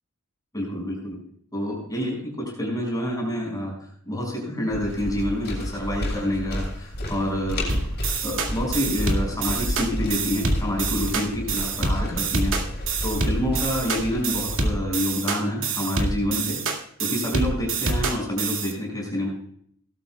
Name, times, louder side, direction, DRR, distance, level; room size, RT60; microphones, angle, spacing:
voice 1, 0.5-1.2 1.5-7.8 8.2-16.6 17.0-19.3, equal, 15° left, -2 dB, 5.9 m, -28 dB
sound 1, 4.7-14.7, left 1 dB, 50° left, 6.2 m, -32 dB
sound 2, 7.7-18.7, right 3 dB, 60° right, 2.2 m, -27 dB
19.0 x 12.5 x 2.3 m, 0.64 s
head